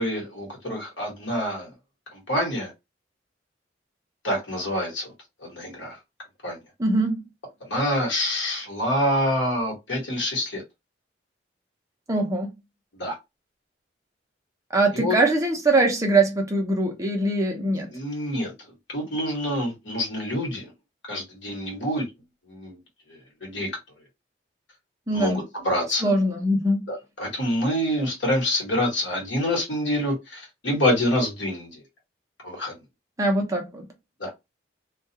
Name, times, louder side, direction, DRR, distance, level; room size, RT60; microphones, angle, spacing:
voice 1, 0.0-1.7 2.1-2.7 4.2-5.1 5.4-6.0 6.4-6.6 7.6-10.6 12.9-13.2 14.9-15.2 17.9-18.5 18.9-20.7 21.1-22.0 22.5-22.8 23.1-23.7 25.1-26.0 26.9-31.8 32.4-32.7 34.2-34.3, left 1 dB, 80° left, 1.2 m, -26 dB
voice 2, 6.8-7.2 12.1-12.5 14.7-17.9 25.1-25.4 26.0-26.8 33.2-33.9, right 2 dB, 15° right, 0.6 m, -22 dB
2.3 x 2.3 x 2.7 m
head